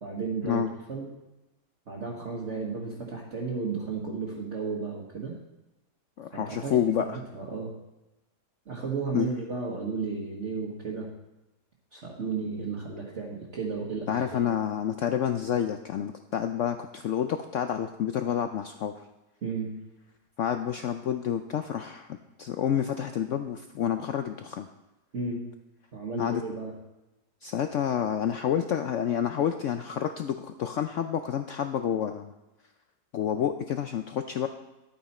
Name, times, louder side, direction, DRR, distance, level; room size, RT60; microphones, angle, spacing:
voice 1, 0.0-0.6 0.9-1.1 1.9-5.3 6.3-7.7 8.6-11.1 11.9-14.5 19.4-19.7 25.1-25.4 25.9-26.7, right 4 dB, 45° right, -3 dB, 1.5 m, -33 dB
voice 2, 6.2-7.2 9.1-9.4 14.1-19.0 20.4-24.7 26.2-26.4 27.4-32.3 33.1-34.5, left 9 dB, 85° left, 8 dB, 0.6 m, -29 dB
11.0 x 8.7 x 4.2 m, 1.0 s
omnidirectional pair, 1.9 m